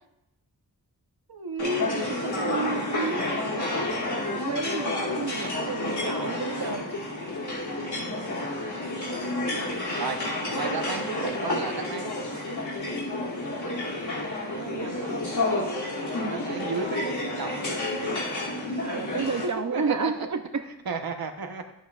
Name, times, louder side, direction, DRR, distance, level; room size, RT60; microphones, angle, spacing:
voice 1, 1.3-3.2 10.0-10.2 10.5-12.1 16.2-17.7 19.7-20.3 20.6-21.6, right 4 dB, 65° right, 6 dB, 1.0 m, -33 dB
sound 1, 1.6-19.4, left 2 dB, 80° left, 2.8 m, -30 dB
voice 2, 4.3-6.9 14.6-15.1 18.8-20.6, right 5 dB, 45° right, 8 dB, 0.7 m, -31 dB
13.0 x 8.3 x 2.4 m, 0.85 s
wide cardioid pair, 90°, 39 cm